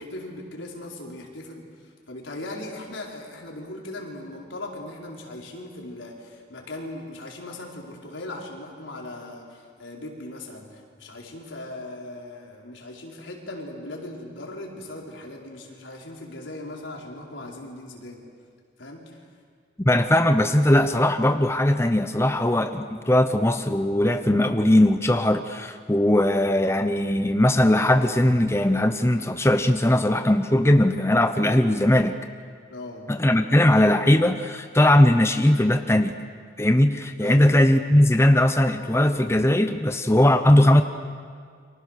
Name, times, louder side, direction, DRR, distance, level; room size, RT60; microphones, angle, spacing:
voice 1, 0.0-18.2 18.8-19.2 32.7-33.1 37.2-37.7, left 1 dB, 85° left, -1 dB, 4.6 m, -39 dB
voice 2, 19.8-32.2 33.1-36.1 36.6-40.8, left 1 dB, 15° left, 8 dB, 0.8 m, -19 dB
29.5 x 25.0 x 6.6 m, 2.1 s
head